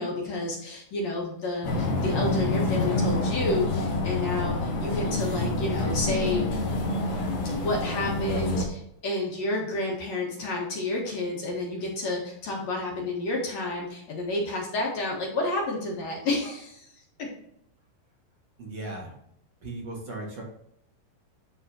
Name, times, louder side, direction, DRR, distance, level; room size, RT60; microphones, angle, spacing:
voice 1, 0.0-6.6 7.5-16.9 17.2-17.3, left 2 dB, 55° left, -2 dB, 2.5 m, -30 dB
sound 1, 1.6-8.7, left 2 dB, 80° left, 3.3 m, -27 dB
voice 2, 18.6-19.2 19.6-20.4, right 2 dB, 50° right, -3 dB, 2.5 m, -37 dB
11.5 x 4.0 x 2.9 m, 0.74 s
omnidirectional pair, 4.4 m